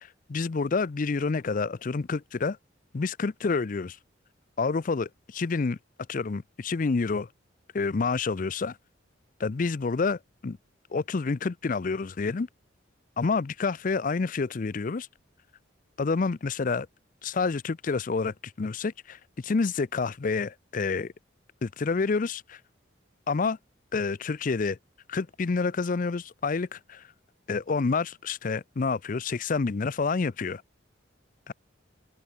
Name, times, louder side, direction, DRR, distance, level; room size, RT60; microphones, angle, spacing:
voice 1, 0.3-2.6 2.9-4.0 4.6-5.8 6.1-7.3 7.7-8.8 9.4-10.6 10.9-12.5 13.2-15.1 16.0-16.9 17.2-21.1 21.6-22.6 23.3-23.6 23.9-24.8 25.1-27.0 27.5-30.6 31.5-31.6, left 4 dB, 45° left, 0.5 m, -28 dB
head